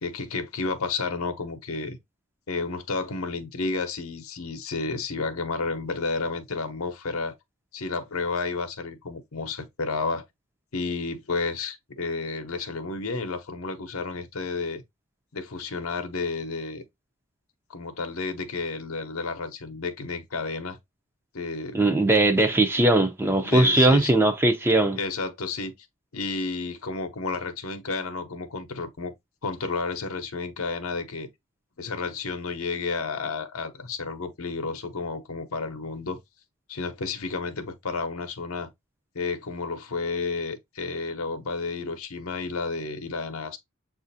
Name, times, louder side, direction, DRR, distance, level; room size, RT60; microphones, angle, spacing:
voice 1, 0.0-2.0 2.5-7.3 7.7-10.2 10.7-14.8 15.3-16.8 17.7-20.8 21.3-21.8 23.4-24.1 25.0-25.7 26.1-29.1 29.4-31.3 31.8-36.2 36.7-38.7 39.1-43.6, left 4 dB, 75° left, 0.8 m, -31 dB
voice 2, 21.7-25.0, right 2 dB, 10° right, 0.4 m, -20 dB
7.2 x 2.5 x 2.6 m
head